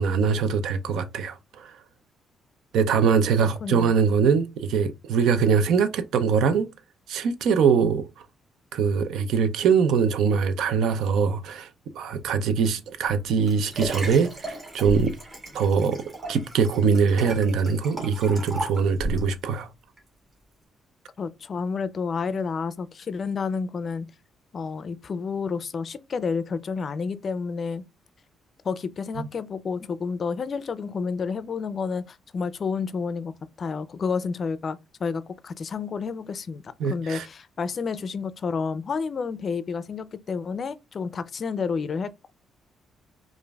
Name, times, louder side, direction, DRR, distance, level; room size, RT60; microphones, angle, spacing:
voice 1, 0.0-1.7 2.7-6.7 7.1-8.1 8.7-11.7 11.9-15.1 15.5-19.7 29.2-29.3 36.8-37.3, right 6 dB, 80° right, 0.5 m, -22 dB
voice 2, 3.4-3.9 21.2-24.1 24.5-27.8 28.6-42.3, left 5 dB, 45° left, 0.4 m, -30 dB
Liquid, 13.1-19.3 20.0-20.1, right 1 dB, 30° right, 1.8 m, -35 dB
5.0 x 2.5 x 2.3 m
cardioid pair, 90°, 0 cm